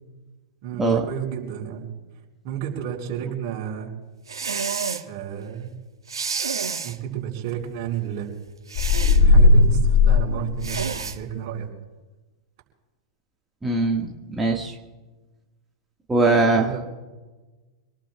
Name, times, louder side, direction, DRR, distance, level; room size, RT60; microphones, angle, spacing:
voice 1, 0.6-1.9 2.4-3.9 5.0-5.7 6.8-8.3 9.1-11.7 16.4-16.8, right 9 dB, 50° right, -1 dB, 4.7 m, -31 dB
sound 1, 4.3-5.0 6.1-7.0 8.7-9.2 10.6-11.2, right 5 dB, 85° right, 1.2 m, -29 dB
sound 2, 8.8-11.2, left 3 dB, 55° left, 4.0 m, -17 dB
voice 2, 13.6-14.8 16.1-16.7, right 3 dB, 10° right, -1 dB, 1.7 m, -21 dB
26.5 x 19.5 x 2.3 m, 1.2 s
hypercardioid pair, 100°, 2 cm